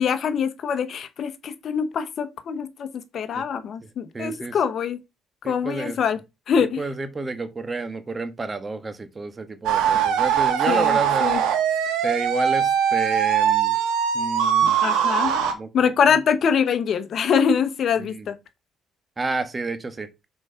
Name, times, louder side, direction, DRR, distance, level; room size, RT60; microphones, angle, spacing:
voice 1, 0.0-2.9 3.1-5.0 5.4-6.2 6.5-6.8 10.7-11.4 14.8-15.3 15.7-18.4, left 7 dB, 60° left, 1.2 m, -24 dB
voice 2, 4.1-4.5 5.4-6.0 6.8-11.4 12.0-13.7 14.1-14.8 15.5-15.9 18.0-18.3 19.2-20.1, right 3 dB, 30° right, 1.4 m, -30 dB
sound 1, 9.6-15.5, right 8 dB, 85° right, 1.8 m, -21 dB
6.4 x 4.8 x 5.7 m
cardioid pair, 80°, 0 cm